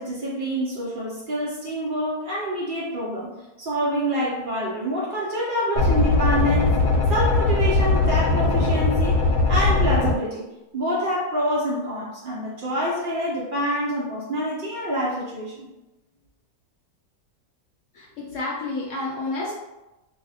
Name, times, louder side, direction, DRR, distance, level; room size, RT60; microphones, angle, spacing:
voice 1, 0.0-3.3 3.6-6.8 7.1-10.5 10.7-15.7, equal, 85° right, -5 dB, 0.4 m, -26 dB
sound 1, 5.8-10.1, left 3 dB, 90° left, 1.2 m, -20 dB
voice 2, 17.9-19.5, left 2 dB, 65° left, -4 dB, 0.8 m, -30 dB
2.6 x 2.0 x 4.0 m, 1.0 s
omnidirectional pair, 1.7 m